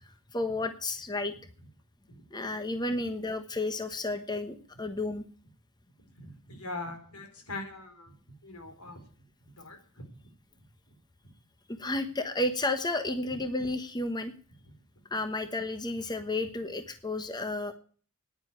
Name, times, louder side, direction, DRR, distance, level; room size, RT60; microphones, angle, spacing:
voice 1, 0.3-1.3 2.3-5.2 11.7-14.3 15.1-17.7, left 2 dB, 20° left, 8 dB, 1.1 m, -32 dB
voice 2, 6.2-8.1 8.4-9.0 9.4-10.1 13.3-13.4, left 2 dB, 85° left, 5 dB, 4.5 m, -42 dB
10.0 x 9.6 x 9.7 m, 0.43 s
head